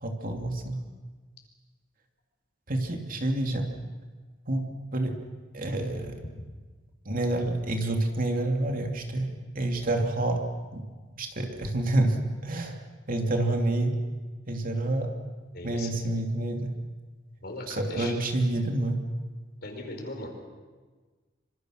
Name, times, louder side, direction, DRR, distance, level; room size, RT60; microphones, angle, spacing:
voice 1, 0.0-0.8 2.7-3.7 4.5-5.2 5.5-6.2 7.0-10.4 10.7-10.8 11.2-12.8 13.1-14.0 14.5-15.1 15.6-16.7 17.7-19.0, right 1 dB, 50° right, 3 dB, 2.9 m, -28 dB
voice 2, 15.5-15.9 17.4-18.1 19.6-20.3, left 2 dB, 60° left, 3 dB, 5.2 m, -38 dB
26.5 x 25.0 x 6.6 m, 1.4 s
head